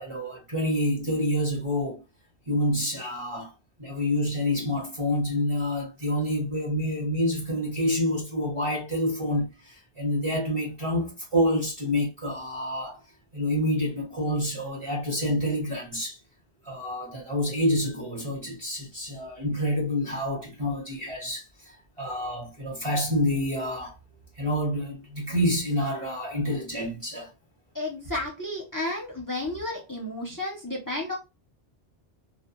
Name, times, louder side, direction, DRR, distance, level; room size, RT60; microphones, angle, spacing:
voice 1, 0.0-2.0 2.5-3.5 3.8-13.0 13.3-16.2 16.6-21.4 22.0-24.0 24.3-27.3, left 1 dB, 30° right, 0.9 m, -28 dB
voice 2, 27.7-31.2, left 2 dB, 25° left, 0.5 m, -32 dB
2.2 x 2.2 x 2.8 m
omnidirectional pair, 1.1 m